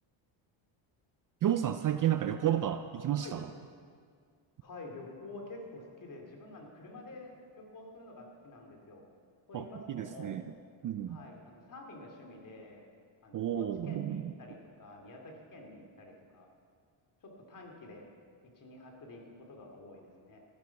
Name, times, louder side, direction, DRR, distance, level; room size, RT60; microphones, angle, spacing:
voice 1, 1.4-3.5 9.5-10.4 10.8-11.2 13.3-14.3, right 11 dB, 40° right, 10 dB, 0.5 m, -31 dB
voice 2, 4.6-9.1 9.5-10.3 11.1-12.9 13.2-16.5 17.2-18.1 18.6-20.4, left 2 dB, 40° left, 1 dB, 2.8 m, -49 dB
14.5 x 10.5 x 5.9 m, 2.1 s
cardioid pair, 130°, 50 cm